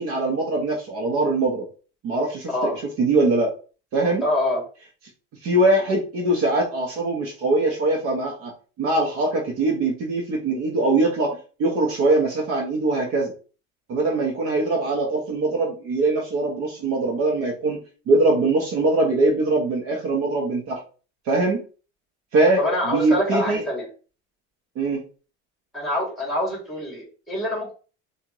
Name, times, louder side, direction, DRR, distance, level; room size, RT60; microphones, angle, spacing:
voice 1, 0.0-1.7 2.0-2.7 3.0-3.5 3.9-4.2 5.4-8.5 8.8-13.3 13.9-17.8 18.1-20.8 21.3-21.6 22.3-23.6 24.8-25.0, right 2 dB, 55° right, 0 dB, 1.1 m, -22 dB
voice 2, 4.2-4.6 22.6-23.9 25.7-27.7, left 1 dB, ahead, -3 dB, 2.0 m, -25 dB
4.2 x 2.6 x 3.0 m, 0.37 s
cardioid pair, 155°, 29 cm